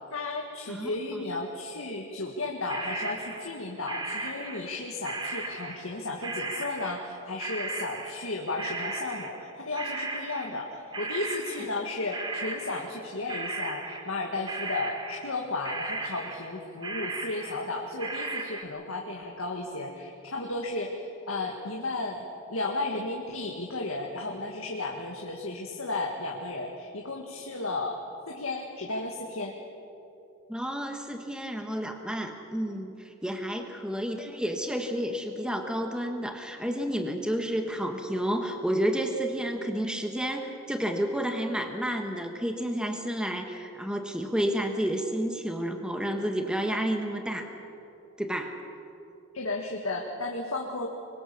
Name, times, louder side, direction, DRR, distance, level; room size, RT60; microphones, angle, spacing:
voice 1, 0.1-28.0 28.3-29.6 49.3-50.9, left 2 dB, 70° left, 0 dB, 2.0 m, -34 dB
voice 2, 0.7-1.2 30.5-47.6 48.2-48.6, equal, 5° right, 4 dB, 1.4 m, -30 dB
sound 1, 2.7-4.8 5.0-11.9 12.1-15.4 15.6-16.6 16.8-18.6, right 3 dB, 20° right, 1.6 m, -36 dB
25.5 x 23.0 x 7.0 m, 2.9 s
head